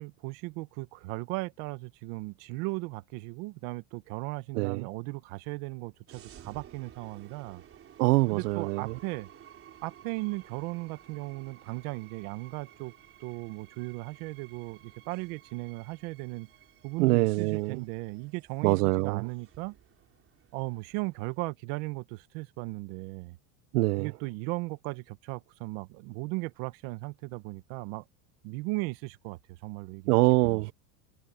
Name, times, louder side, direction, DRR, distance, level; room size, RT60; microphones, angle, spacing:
voice 1, 0.0-7.6 8.3-9.3 9.8-12.9 13.2-16.5 16.8-19.8 20.5-23.4 24.0-28.0 28.4-30.2 30.4-30.6, right 23 dB, 55° right, 1.3 m, -37 dB
voice 2, 4.5-4.9 8.0-8.9 17.0-17.8 18.6-19.2 23.7-24.1 30.1-30.7, right 22 dB, 85° right, 0.6 m, -24 dB
sound 1, 6.1-21.4, right 10 dB, 30° right, 4.3 m, -55 dB
supercardioid pair, 150°, 45 cm